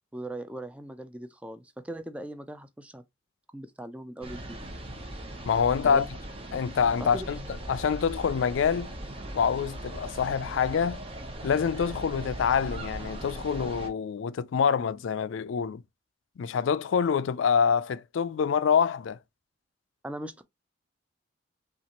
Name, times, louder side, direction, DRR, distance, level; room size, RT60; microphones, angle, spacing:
voice 1, 0.1-3.0 3.5-4.6 5.9-6.1 7.0-7.3 20.0-20.4, right 1 dB, 5° right, 0.4 m, -39 dB
sound 1, 4.2-13.9, right 1 dB, 30° right, 0.8 m, -39 dB
voice 2, 5.5-6.1 6.5-7.4 7.7-8.9 9.3-11.0 11.4-15.8 16.4-19.2, left 6 dB, 80° left, 0.4 m, -26 dB
5.8 x 2.4 x 2.9 m
head